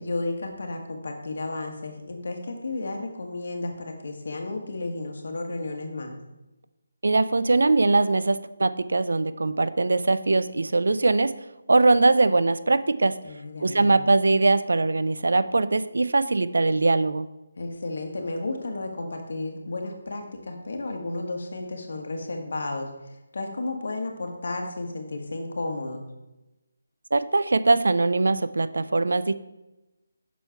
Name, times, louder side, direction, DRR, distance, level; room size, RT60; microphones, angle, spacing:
voice 1, 0.0-6.2 13.2-14.0 17.6-26.1, left 2 dB, 60° left, 3 dB, 1.4 m, -33 dB
voice 2, 7.0-11.3 11.7-13.1 13.6-17.3 27.1-29.3, right 3 dB, 80° right, 14 dB, 0.4 m, -21 dB
6.2 x 4.5 x 5.7 m, 1.0 s
figure-of-eight pair, 170°, 0 cm